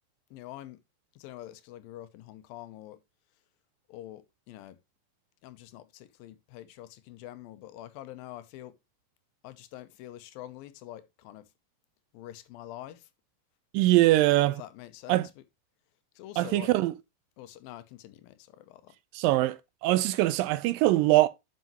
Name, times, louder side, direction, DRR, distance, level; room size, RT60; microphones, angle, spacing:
voice 1, 0.3-0.8 1.2-3.0 3.9-4.8 5.4-8.8 9.4-11.5 12.1-13.1 14.6-15.5 16.2-16.7 17.4-18.9, left 14 dB, 85° left, 2.5 m, -46 dB
voice 2, 13.7-14.6 15.1-15.3 16.4-16.9 19.1-21.3, right 17 dB, 80° right, 2.2 m, -23 dB
9.5 x 5.9 x 2.9 m
omnidirectional pair, 4.1 m